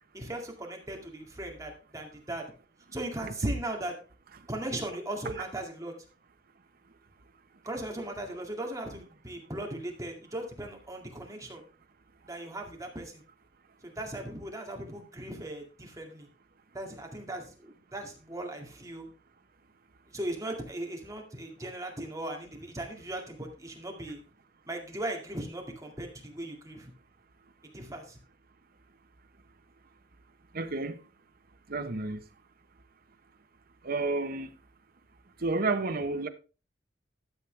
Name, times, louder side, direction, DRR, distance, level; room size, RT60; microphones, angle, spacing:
voice 1, 0.1-2.5 2.9-3.9 4.5-5.9 7.6-11.6 12.3-13.2 13.8-16.3 16.7-19.1 20.1-24.2 24.7-26.9 27.7-28.2, right 1 dB, 20° right, 2.1 m, -38 dB
voice 2, 30.5-31.0 31.7-32.2 33.8-34.5 35.4-36.3, right 3 dB, 50° right, 1.0 m, -30 dB
12.5 x 7.6 x 3.4 m
head